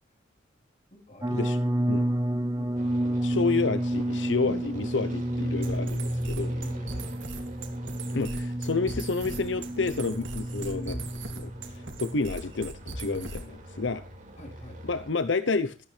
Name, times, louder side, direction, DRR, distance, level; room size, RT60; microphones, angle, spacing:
voice 1, 0.9-1.4 1.7-2.7 3.0-4.8 6.5-7.1 8.2-8.3 14.4-14.8, equal, 40° left, 1 dB, 3.9 m, -48 dB
sound 1, 1.2-12.2, right 1 dB, 20° right, 1.1 m, -30 dB
sound 2, 2.7-15.1, equal, 45° right, 5.0 m, -45 dB
voice 2, 3.2-6.5 8.1-11.0 11.3-14.0 14.9-15.9, left 4 dB, 75° left, 12 dB, 0.8 m, -30 dB
sound 3, 5.6-13.6, right 3 dB, 85° right, 3.0 m, -40 dB
14.5 x 13.5 x 3.4 m, 0.34 s
head